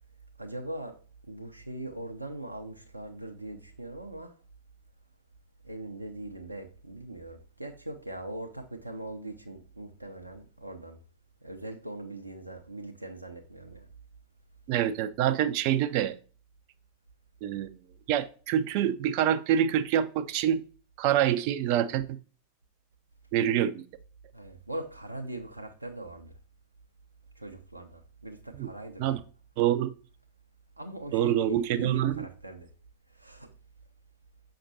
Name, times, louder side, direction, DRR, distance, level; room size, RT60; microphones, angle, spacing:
voice 1, 0.4-1.0 1.3-4.3 5.6-11.0 11.4-13.9 24.3-26.4 27.4-29.2 30.8-32.7 33.1-33.5, right 1 dB, 85° right, 0.7 m, -41 dB
voice 2, 14.7-16.1 17.4-17.7 18.1-20.6 21.0-22.1 23.3-23.8 28.6-28.7 29.0-29.2 29.6-29.9 31.1-32.2, right 10 dB, 45° right, 0.5 m, -26 dB
6.6 x 5.9 x 2.6 m
figure-of-eight pair, 90°, 0 cm